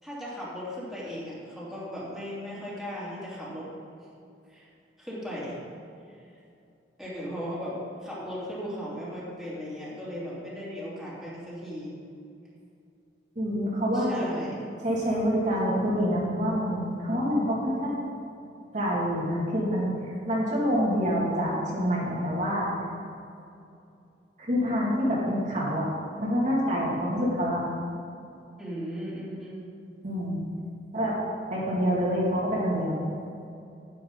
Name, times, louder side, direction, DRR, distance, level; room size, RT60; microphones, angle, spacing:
voice 1, 0.0-3.7 4.5-4.7 5.0-5.6 7.0-11.9 13.9-14.5 28.6-29.6, equal, ahead, -9 dB, 2.9 m, -37 dB
voice 2, 13.4-14.3 14.8-17.9 18.7-22.7 24.4-25.9 26.2-27.6 30.0-30.4 30.9-31.2 31.5-33.0, equal, 45° right, -6 dB, 2.3 m, -26 dB
10.5 x 10.0 x 3.9 m, 2.6 s
head